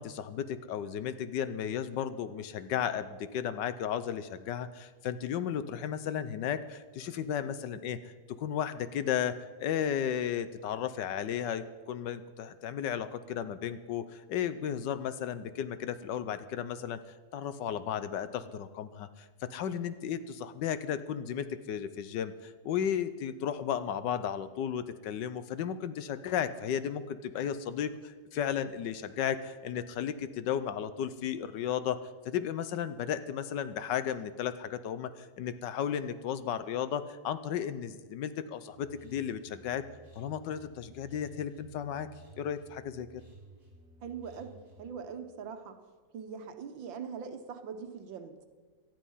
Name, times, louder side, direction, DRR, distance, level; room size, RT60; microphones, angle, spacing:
voice 1, 0.0-17.0 17.3-39.8 40.1-42.1 42.4-43.2, left 9 dB, 70° left, 13 dB, 1.3 m, -34 dB
sound 1, 38.7-44.9, right 2 dB, 35° right, 4.7 m, -55 dB
voice 2, 44.0-45.8 46.1-48.5, right 6 dB, 85° right, 8 dB, 1.9 m, -42 dB
18.0 x 12.5 x 5.6 m, 1.4 s
omnidirectional pair, 2.0 m